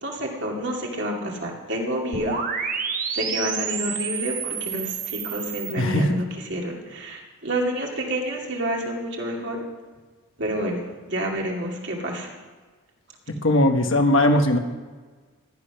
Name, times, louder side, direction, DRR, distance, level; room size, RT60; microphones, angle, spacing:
voice 1, 0.0-2.8 3.1-9.6 10.4-12.3, equal, 55° right, -1 dB, 2.5 m, -29 dB
sound 1, 2.1-5.7, right 6 dB, 40° right, 1.1 m, -29 dB
voice 2, 5.8-6.2 13.4-14.6, left 1 dB, 60° left, 5 dB, 1.3 m, -19 dB
14.5 x 11.0 x 5.9 m, 1.4 s
head